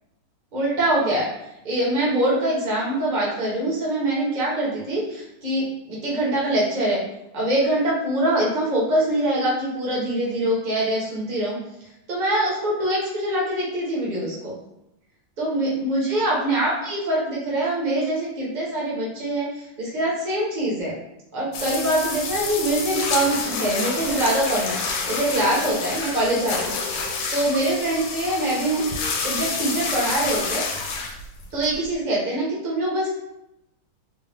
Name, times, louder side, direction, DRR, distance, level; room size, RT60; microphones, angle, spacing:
voice 1, 0.5-1.3 1.6-7.0 7.3-11.6 12.1-14.5 15.4-20.9 21.3-26.7 27.3-28.8 29.2-30.6 31.5-33.2, right 1 dB, 30° right, -6 dB, 0.9 m, -24 dB
sound 1, 21.5-31.9, left 4 dB, 85° left, 1.4 m, -28 dB
3.6 x 2.4 x 3.3 m, 0.85 s
omnidirectional pair, 2.1 m